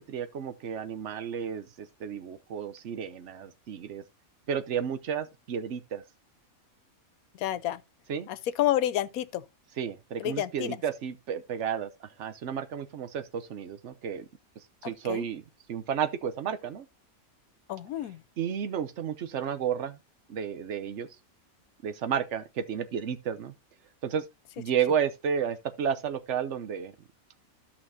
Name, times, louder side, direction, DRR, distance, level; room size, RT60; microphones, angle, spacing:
voice 1, 0.1-4.0 4.5-6.0 8.1-8.3 9.8-14.2 14.8-16.9 18.4-20.0 20.3-21.1 21.8-23.5 24.0-24.2 24.6-26.9, right 8 dB, 60° right, 1.1 m, -32 dB
voice 2, 7.4-7.8 8.3-9.4 10.2-10.8 14.8-15.2 17.7-18.2, left 12 dB, 80° left, 1.1 m, -29 dB
13.0 x 5.8 x 2.7 m
omnidirectional pair, 1.5 m